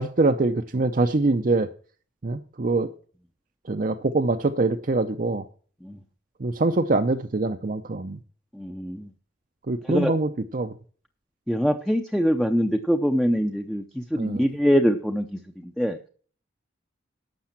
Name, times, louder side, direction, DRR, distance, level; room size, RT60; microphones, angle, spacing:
voice 1, 0.0-1.7 2.2-2.9 3.7-5.4 6.4-8.2 9.7-10.7 14.2-14.4, right 2 dB, 45° right, 8 dB, 0.6 m, -24 dB
voice 2, 8.5-9.1 9.8-10.1 11.5-16.0, equal, ahead, 4 dB, 0.6 m, -24 dB
11.5 x 7.5 x 5.8 m, 0.42 s
head